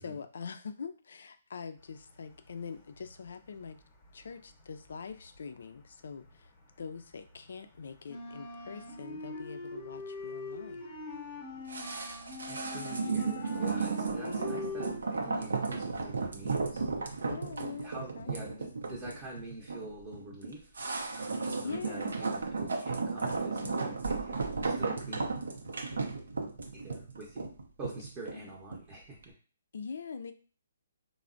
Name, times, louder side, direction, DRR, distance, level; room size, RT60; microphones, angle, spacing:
voice 1, 0.0-3.8 4.1-6.5 6.8-10.8 14.2-14.5 17.2-18.5 21.6-22.2 23.6-23.9 29.7-30.3, left 5 dB, 70° left, 9 dB, 0.3 m, -43 dB
sound 1, 2.3-3.2 3.5-6.5 6.8-15.0, left 3 dB, 25° left, 0.6 m, -42 dB
sound 2, 11.7-28.9 29.2-29.3, right 4 dB, 80° right, 0.5 m, -34 dB
voice 2, 12.5-17.3 17.6-25.4 26.7-27.5 27.8-29.3, right 2 dB, 20° right, -3 dB, 0.6 m, -46 dB
3.2 x 2.0 x 2.5 m, 0.39 s
hypercardioid pair, 150°, 0 cm